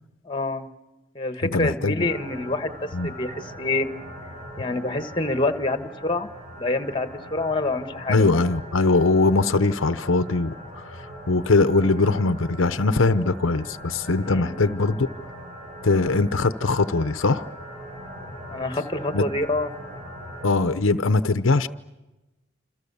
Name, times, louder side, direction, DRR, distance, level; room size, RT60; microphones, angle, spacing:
voice 1, 0.2-0.7 1.1-3.9 4.6-6.3 6.5-8.4 14.3-14.6 18.5-19.7, left 2 dB, 25° left, 9 dB, 1.5 m, -27 dB
voice 2, 1.4-2.1 2.9-3.1 8.1-10.5 11.3-15.1 15.8-17.4 19.1-19.2 20.4-21.7, left 3 dB, 85° left, 12 dB, 0.9 m, -21 dB
sound 1, 2.0-20.5, equal, 35° right, 8.0 m, -40 dB
28.5 x 27.5 x 7.0 m, 1.1 s
head